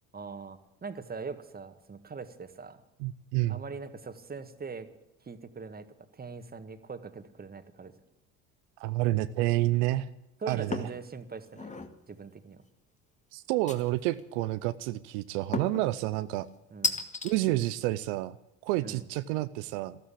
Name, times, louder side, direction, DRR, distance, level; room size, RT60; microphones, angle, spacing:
voice 1, 0.1-2.8 3.5-4.9 5.2-5.9 6.1-7.9 10.4-11.7 12.1-12.6 16.7-17.0 18.8-19.1, right 4 dB, 25° right, 10 dB, 1.7 m, -41 dB
voice 2, 3.0-3.6 8.8-10.1 10.5-10.9 13.3-16.5 17.2-18.4 18.6-20.0, right 16 dB, 80° right, 14 dB, 0.6 m, -29 dB
sound 1, 10.7-11.0 11.5-11.9 13.7-14.2 15.5-15.9 16.8-17.3, left 3 dB, 20° left, 1.8 m, -33 dB
13.0 x 12.5 x 8.5 m, 0.92 s
supercardioid pair, 75°, 35 cm